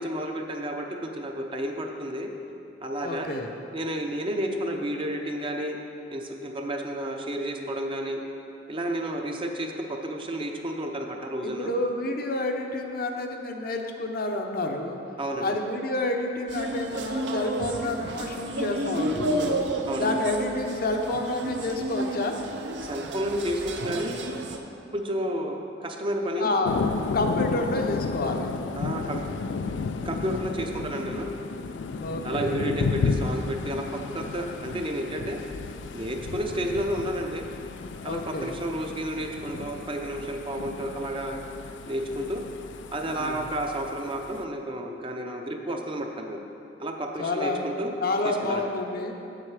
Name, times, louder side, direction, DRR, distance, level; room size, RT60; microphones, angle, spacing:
voice 1, 0.0-2.3 2.8-3.3 3.7-5.8 6.1-8.2 8.7-11.7 15.2-15.5 19.9-20.2 22.8-24.2 24.9-26.5 28.8-29.2 30.0-31.3 32.2-35.4 35.9-37.5 38.0-41.4 41.9-42.4 42.9-46.4 46.8-47.9 48.2-48.6, right 1 dB, 30° right, 2 dB, 0.6 m, -31 dB
voice 2, 3.0-3.5 11.4-15.0 15.4-19.6 20.0-22.4 26.4-26.8 27.1-28.5 32.0-32.5 38.0-38.6 43.2-43.4 47.2-47.6 48.0-49.2, left 2 dB, 55° left, 3 dB, 0.7 m, -29 dB
sound 1, 16.5-24.6, right 1 dB, 70° right, 0.6 m, -31 dB
Thunder, 26.6-44.4, left 4 dB, 85° left, 0.4 m, -33 dB
7.6 x 7.5 x 4.9 m, 2.7 s
head